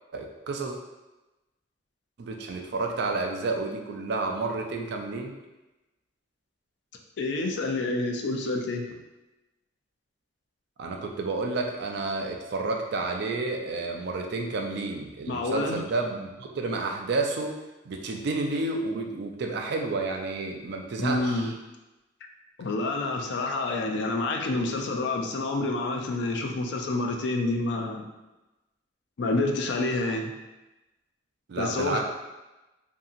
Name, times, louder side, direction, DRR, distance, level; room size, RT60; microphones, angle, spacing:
voice 1, 0.1-0.7 2.2-5.3 10.8-17.6 17.9-21.5 31.5-32.0, right 3 dB, 65° right, 2 dB, 0.4 m, -30 dB
voice 2, 7.2-8.9 15.3-15.8 21.0-21.5 22.6-28.1 29.2-30.3 31.6-32.0, left 2 dB, 70° left, 2 dB, 0.4 m, -28 dB
2.8 x 2.7 x 2.5 m, 1.1 s
head